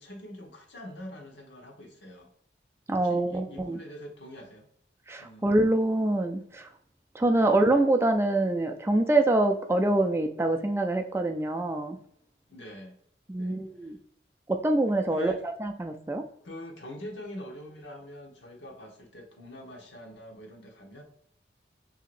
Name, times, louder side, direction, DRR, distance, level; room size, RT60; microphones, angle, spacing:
voice 1, 0.0-2.3 3.0-4.7 5.2-5.5 7.3-7.6 12.5-13.0 13.3-13.6 15.1-15.4 16.4-21.0, left 1 dB, 90° left, 3 dB, 1.0 m, -44 dB
voice 2, 2.9-3.8 5.1-6.7 7.1-12.0 13.3-14.0 14.5-16.2, right 2 dB, 15° right, 4 dB, 0.3 m, -25 dB
6.0 x 2.8 x 2.5 m, 0.67 s
head